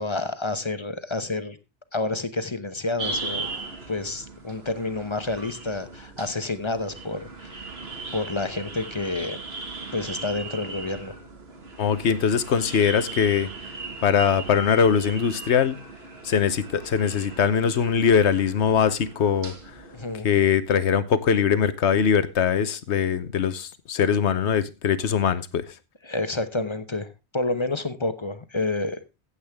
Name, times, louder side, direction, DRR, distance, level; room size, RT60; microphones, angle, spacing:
voice 1, 0.0-1.6 1.9-3.5 3.9-7.7 8.1-9.4 9.9-11.1 19.9-20.3 26.0-29.0, left 2 dB, 25° left, 0.9 m, -29 dB
sound 1, 3.0-20.2, right 3 dB, 65° right, 1.9 m, -38 dB
voice 2, 11.8-13.5 14.0-15.8 16.2-19.5 20.2-25.6, left 7 dB, 75° left, 1.2 m, -22 dB
15.0 x 8.3 x 3.5 m
omnidirectional pair, 1.2 m